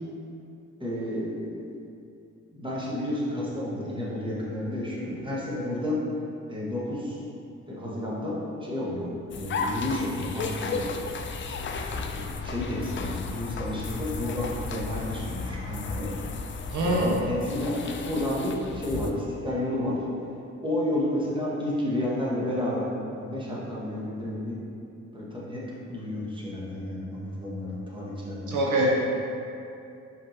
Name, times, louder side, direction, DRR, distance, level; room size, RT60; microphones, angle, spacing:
voice 1, 0.8-1.7 2.5-6.0 6.5-7.2 7.7-10.9 11.9-16.2 16.8-20.0 20.6-22.9 23.1-24.6 25.1-25.6 25.9-28.9, left 1 dB, 15° right, -6 dB, 1.3 m, -31 dB
sound 1, 9.3-19.1, left 4 dB, 35° left, 0.4 m, -34 dB
voice 2, 16.7-17.2 28.5-28.9, right 1 dB, 60° right, -3 dB, 0.7 m, -24 dB
5.1 x 3.6 x 2.8 m, 2.6 s
supercardioid pair, 60°, 33 cm